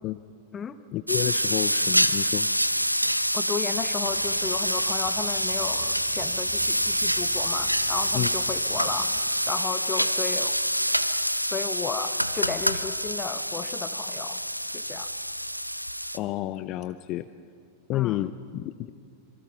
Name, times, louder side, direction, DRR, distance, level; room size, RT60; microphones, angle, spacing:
voice 1, 0.9-2.5 8.1-8.3 16.1-17.3 17.9-18.9, left 15 dB, 40° left, 12 dB, 0.5 m, -30 dB
sound 1, 1.1-16.2, equal, 90° right, 0.6 m, -26 dB
voice 2, 3.3-9.1 9.5-10.6 11.5-14.4 14.7-15.1 17.9-18.2, left 6 dB, 20° left, 12 dB, 1.0 m, -34 dB
sound 2, 4.1-9.2, right 8 dB, 30° right, 1.7 m, -45 dB
26.0 x 24.0 x 5.7 m, 2.4 s
figure-of-eight pair, 90°, 0 cm